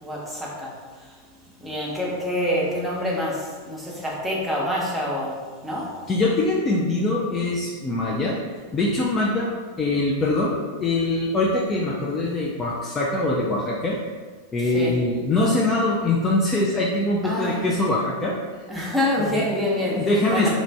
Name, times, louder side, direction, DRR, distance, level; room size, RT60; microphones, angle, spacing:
voice 1, 0.0-1.2 1.6-6.0 14.6-15.0 17.2-17.6 18.7-20.5, left 1 dB, 5° right, -5 dB, 0.8 m, -27 dB
voice 2, 6.1-8.4 8.7-9.5 9.8-14.0 14.5-18.4 19.2-19.3 19.9-20.5, left 2 dB, 20° left, -4 dB, 0.4 m, -23 dB
3.0 x 2.5 x 3.3 m, 1.5 s
figure-of-eight pair, 90°, 0 cm